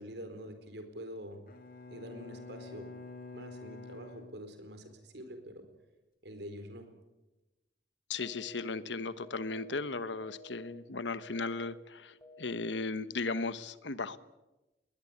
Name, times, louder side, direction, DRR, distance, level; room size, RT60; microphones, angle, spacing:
voice 1, 0.0-1.4 1.9-2.9 3.3-5.7 6.2-6.9, equal, 70° right, 8 dB, 4.4 m, -46 dB
Bowed string instrument, 1.5-5.0, left 3 dB, 50° left, 2.1 m, -48 dB
voice 2, 8.1-14.2, left 3 dB, 85° left, 14 dB, 1.2 m, -36 dB
sound 1, 8.2-8.7 9.2-9.7 10.2-10.7 11.2-11.7 12.2-12.7, equal, 15° left, 3.6 m, -53 dB
21.0 x 20.0 x 9.6 m, 1.0 s
head